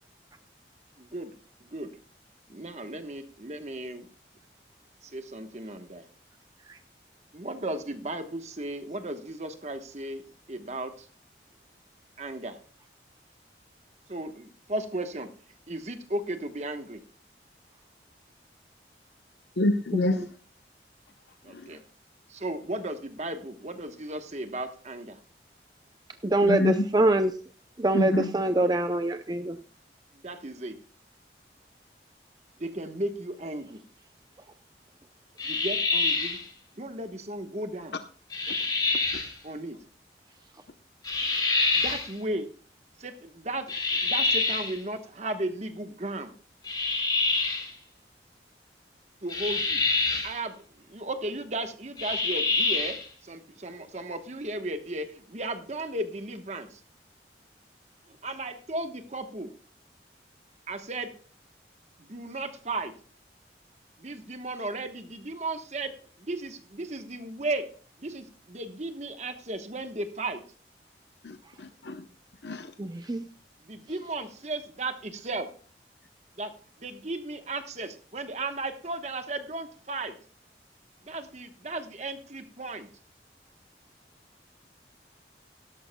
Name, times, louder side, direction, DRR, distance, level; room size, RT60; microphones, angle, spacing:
voice 1, 1.0-1.3 1.6-1.9 2.5-4.1 5.0-6.0 7.3-10.2 10.5-11.1 12.2-12.6 14.1-15.3 15.7-17.0 21.4-21.8 22.3-25.2 30.1-30.7 32.6-33.8 35.4-36.4 36.8-37.9 39.4-39.8 41.7-42.5 43.0-43.7 44.0-46.3 49.2-49.8 50.2-56.8 58.1-59.5 60.7-61.1 62.0-62.9 64.0-67.7 68.0-70.4 73.6-75.5 76.4-76.5 76.8-80.2 81.0-82.9, right 2 dB, 40° right, 1.1 m, -35 dB
voice 2, 19.6-20.3 21.5-21.8 26.4-26.9 27.9-28.3 38.5-38.6 38.9-39.2 71.2-72.1 72.4-72.7, left 1 dB, 70° left, 0.7 m, -28 dB
voice 3, 26.2-27.3 27.8-29.6 72.8-73.2, right 1 dB, 20° right, 0.5 m, -24 dB
sound 1, 35.4-36.4 38.3-39.3 41.0-42.1 43.7-44.8 46.6-47.7 49.3-50.3 52.0-53.0, left 3 dB, 25° left, 3.1 m, -26 dB
16.5 x 13.0 x 2.2 m
head